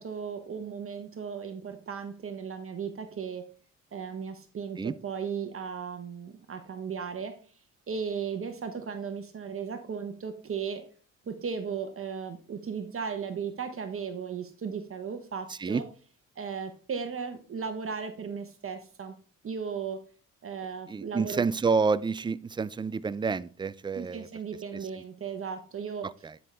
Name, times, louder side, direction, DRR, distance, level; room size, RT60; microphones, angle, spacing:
voice 1, 0.0-3.4 3.9-7.3 7.9-10.8 11.3-15.8 16.4-19.1 19.4-20.0 20.4-21.4 24.0-26.1, right 6 dB, 40° right, 1.0 m, -36 dB
voice 2, 15.5-15.8 20.9-24.3 26.0-26.4, right 4 dB, 15° right, 0.3 m, -29 dB
9.8 x 5.4 x 3.3 m
cardioid pair, 90°, 33 cm